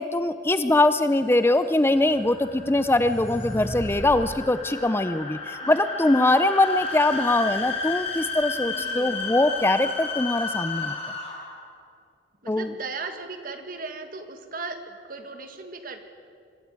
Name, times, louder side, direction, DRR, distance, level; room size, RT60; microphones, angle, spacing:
voice 1, 0.0-11.0 12.5-12.7, left 2 dB, 15° left, 12 dB, 0.5 m, -22 dB
sound 1, 0.9-11.6, left 4 dB, 35° left, 4.7 m, -33 dB
sound 2, 1.3-4.2, equal, 55° left, 5.7 m, -37 dB
voice 2, 8.7-9.3 12.4-16.0, right 3 dB, 50° right, 7 dB, 1.8 m, -37 dB
24.0 x 13.0 x 9.5 m, 2.3 s
head